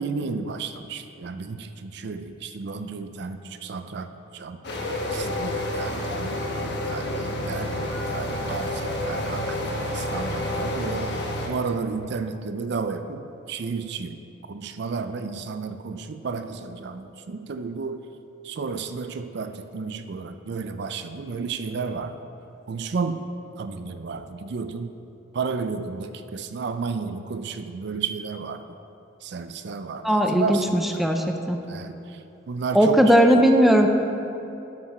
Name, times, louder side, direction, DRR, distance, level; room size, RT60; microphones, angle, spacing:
voice 1, 0.0-4.6 5.1-11.1 11.5-18.1 18.4-22.1 22.7-23.3 23.6-24.9 25.3-28.6 29.2-30.8 31.7-33.0, right 4 dB, 60° right, 9 dB, 0.4 m, -32 dB
sound 1, 4.6-11.5, left 1 dB, 60° left, 1.2 m, -29 dB
voice 2, 30.0-31.6 32.7-33.9, equal, ahead, 3 dB, 0.5 m, -18 dB
12.5 x 5.9 x 4.3 m, 2.9 s
head